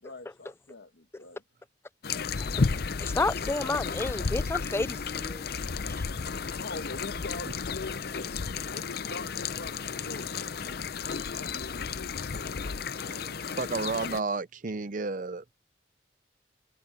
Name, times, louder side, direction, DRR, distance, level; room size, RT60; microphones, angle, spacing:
voice 1, 0.0-1.4 6.4-10.8 11.3-12.5, left 3 dB, 80° left, 1.4 m, -43 dB
sound 1, 2.0-14.2, left 5 dB, 60° left, 0.6 m, -33 dB
voice 2, 3.0-5.4, left 3 dB, 15° left, 0.3 m, -31 dB
voice 3, 13.1-15.4, right 4 dB, 50° right, 0.7 m, -32 dB
head